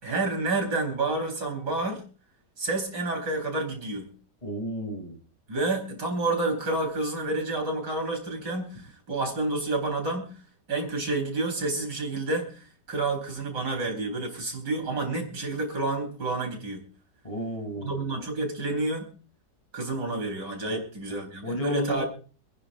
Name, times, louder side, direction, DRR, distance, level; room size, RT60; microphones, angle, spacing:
voice 1, 0.0-2.0 2.6-4.1 5.5-10.4 10.7-16.9 17.8-19.1 19.7-22.0, right 2 dB, 80° right, 3 dB, 4.5 m, -29 dB
voice 2, 4.4-5.2 17.2-18.0 20.7-20.8 21.4-22.0, left 1 dB, 20° left, 3 dB, 3.2 m, -32 dB
27.5 x 9.9 x 2.5 m, 0.38 s
omnidirectional pair, 1.8 m